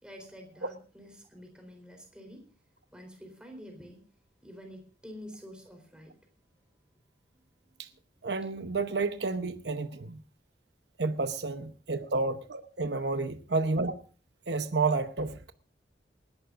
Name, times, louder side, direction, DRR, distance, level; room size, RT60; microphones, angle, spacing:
voice 1, 0.0-2.4 2.9-4.0 4.4-6.1 7.3-7.9 8.4-8.5 8.9-9.0, equal, 5° right, 3.9 m, -48 dB
voice 2, 8.2-10.2 11.0-14.0 14.5-15.5, right 3 dB, 75° right, 0.9 m, -30 dB
28.0 x 12.0 x 2.6 m
head